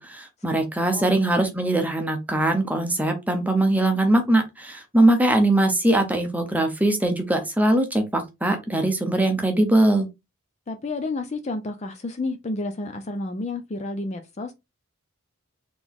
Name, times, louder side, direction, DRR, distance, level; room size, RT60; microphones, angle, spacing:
voice 1, 0.0-10.1, right 1 dB, 5° right, 0.8 m, -21 dB
voice 2, 10.7-14.5, left 2 dB, 30° left, 0.4 m, -30 dB
4.1 x 3.0 x 3.5 m
head